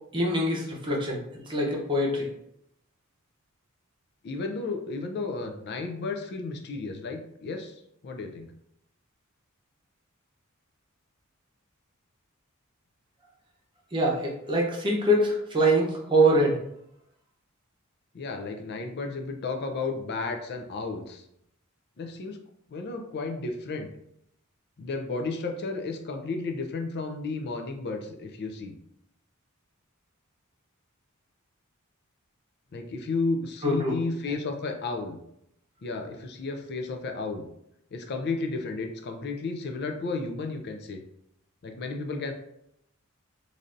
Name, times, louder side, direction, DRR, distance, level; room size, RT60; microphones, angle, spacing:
voice 1, 0.1-2.3 13.9-16.6 33.6-33.9, right 1 dB, 25° right, -2 dB, 0.7 m, -24 dB
voice 2, 4.2-7.7 8.0-8.5 18.1-21.2 22.0-22.4 22.7-23.9 24.8-28.7 32.7-35.2 35.8-37.5 37.9-41.0 41.6-42.3, left 3 dB, 50° left, 4 dB, 0.4 m, -33 dB
3.2 x 2.5 x 2.5 m, 0.76 s
head